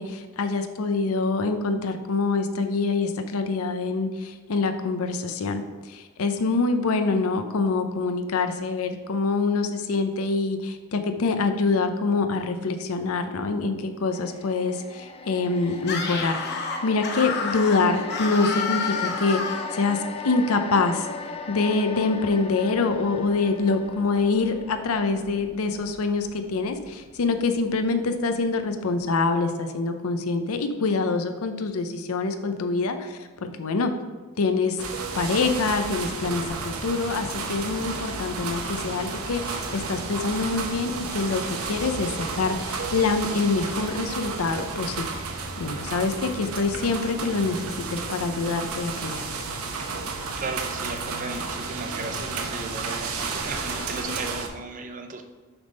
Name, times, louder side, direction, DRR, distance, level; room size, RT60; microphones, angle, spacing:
voice 1, 0.0-16.4 16.8-21.1 21.5-33.3 33.6-33.9 34.4-34.8 35.1-45.2 45.6-49.2, left 3 dB, 80° left, 7 dB, 0.6 m, -25 dB
sound 1, 14.1-28.5 28.8-29.0, left 4 dB, 25° left, 0.4 m, -38 dB
Screaming, 15.8-19.8, left 4 dB, 50° left, 0.8 m, -29 dB
sound 2, 34.8-54.5, right 4 dB, 85° right, 0.8 m, -32 dB
voice 2, 50.4-55.2, right 3 dB, 40° right, 5 dB, 0.6 m, -35 dB
7.1 x 3.5 x 5.2 m, 1.4 s
head